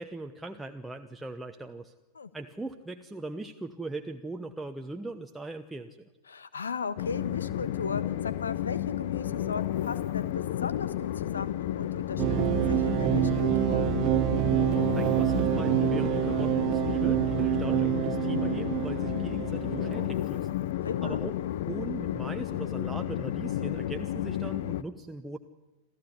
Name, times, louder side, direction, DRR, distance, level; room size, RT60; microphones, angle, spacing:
voice 1, 0.0-1.9 2.3-6.1 14.9-20.5 21.0-21.3 21.7-25.4, right 2 dB, 5° right, 4 dB, 1.0 m, -39 dB
voice 2, 6.3-12.2 12.5-13.9 20.8-21.2, left 5 dB, 70° left, 15 dB, 1.3 m, -36 dB
Train, 7.0-24.8, left 12 dB, 55° left, 0.8 m, -32 dB
sound 1, 12.2-20.1, right 16 dB, 40° right, 0.7 m, -27 dB
27.5 x 15.0 x 9.7 m, 1.1 s
figure-of-eight pair, 90°, 0 cm